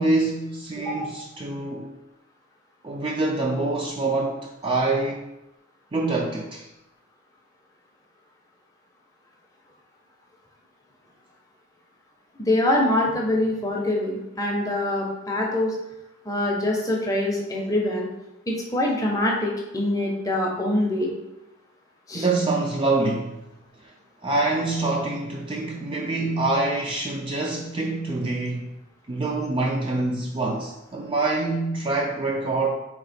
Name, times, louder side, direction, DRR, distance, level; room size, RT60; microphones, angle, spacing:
voice 1, 0.0-1.9 2.8-5.3 5.9-6.7 22.1-23.4 24.2-28.7 29.1-32.7, right 2 dB, 25° right, 0 dB, 0.3 m, -25 dB
voice 2, 0.8-1.2 12.4-15.8 16.3-18.1 18.5-21.1 22.1-22.3, left 1 dB, 15° left, -1 dB, 0.6 m, -24 dB
3.8 x 2.9 x 4.2 m, 0.95 s
head